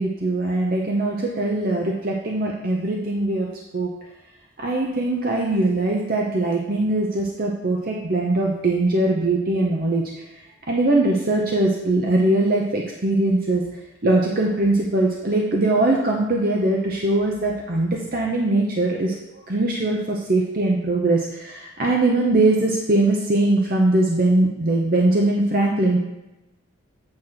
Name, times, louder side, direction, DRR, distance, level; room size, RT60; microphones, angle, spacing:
voice 1, 0.0-3.5 3.7-3.9 4.6-10.3 10.7-13.6 14.0-19.1 19.5-26.0, right 2 dB, 45° right, -1 dB, 0.7 m, -21 dB
8.7 x 3.1 x 5.8 m, 0.94 s
head